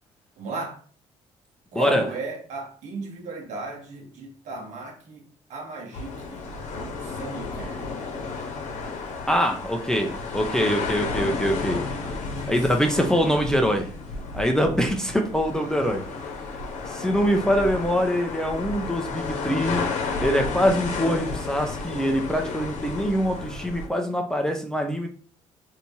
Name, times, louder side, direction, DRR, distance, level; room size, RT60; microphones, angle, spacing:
voice 1, 0.4-0.8 1.7-5.2 5.5-6.5 6.7-7.9 12.2-12.6, right 3 dB, 65° right, 1.1 m, -35 dB
voice 2, 1.7-2.1 9.3-11.9 12.5-13.9 14.3-16.0 16.9-19.8 20.2-25.1, equal, 5° left, 0.6 m, -24 dB
sound 1, 5.9-23.9, left 4 dB, 65° left, 0.9 m, -32 dB
3.2 x 2.8 x 2.7 m
supercardioid pair, 80°, 13 cm